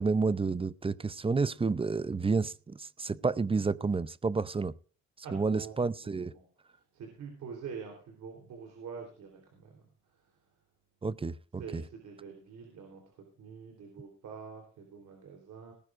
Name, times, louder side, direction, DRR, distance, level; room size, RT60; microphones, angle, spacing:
voice 1, 0.0-4.7 5.3-6.3 11.0-11.8, right 4 dB, 20° right, 0.6 m, -30 dB
voice 2, 5.2-6.5 6.7-9.9 11.6-15.7, right 6 dB, 75° right, 3.7 m, -46 dB
19.0 x 14.5 x 2.6 m
cardioid pair, 90°, 30 cm